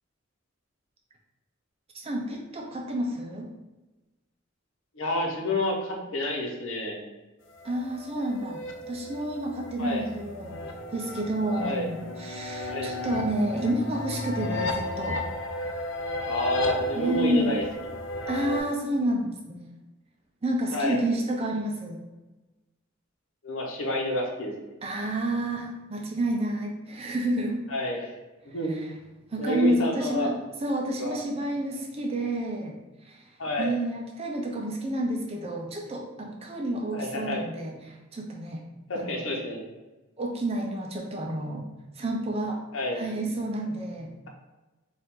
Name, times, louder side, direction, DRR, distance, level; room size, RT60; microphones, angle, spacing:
voice 1, 1.9-3.5 7.6-8.6 8.9-10.6 10.9-15.2 16.9-17.6 18.3-19.7 20.4-22.1 24.8-27.6 28.6-28.9 29.3-32.7 33.0-33.3 33.6-38.6 38.9-39.2 40.2-41.7 42.0-42.6 42.9-44.3, right 1 dB, 30° right, 1 dB, 0.5 m, -30 dB
voice 2, 5.0-7.0 9.8-10.0 11.6-11.9 12.7-12.9 16.2-17.6 20.7-21.0 23.4-24.5 27.7-28.0 28.5-28.8 29.4-30.3 31.0-31.2 33.4-33.7 36.9-37.5 38.9-39.6 42.7-43.0, left 1 dB, 80° left, 0 dB, 0.9 m, -29 dB
sound 1, 7.5-18.6, left 1 dB, 65° left, 0.6 m, -34 dB
4.6 x 2.5 x 3.8 m, 1.1 s
head